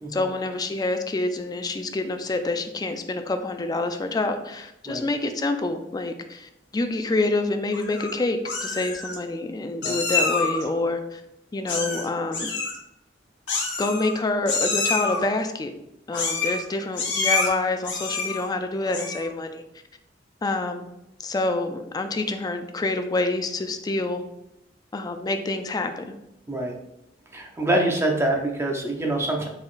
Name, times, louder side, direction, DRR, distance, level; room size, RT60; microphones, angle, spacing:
voice 1, 0.1-11.2 11.5-12.5 13.8-15.7 16.1-19.6 20.4-20.9 21.2-24.2 24.9-26.1, left 2 dB, 20° left, 7 dB, 0.3 m, -27 dB
Meow, 7.7-8.1 8.5-9.2 9.8-10.6 11.7-12.1 12.3-12.8 13.5-14.2 14.5-15.2 16.1-16.6 16.9-17.5 17.8-18.4 18.9-19.3, left 4 dB, 75° left, 1.0 m, -27 dB
voice 2, 27.3-29.5, right 1 dB, 15° right, 1 dB, 0.6 m, -25 dB
4.1 x 3.8 x 2.5 m, 0.85 s
head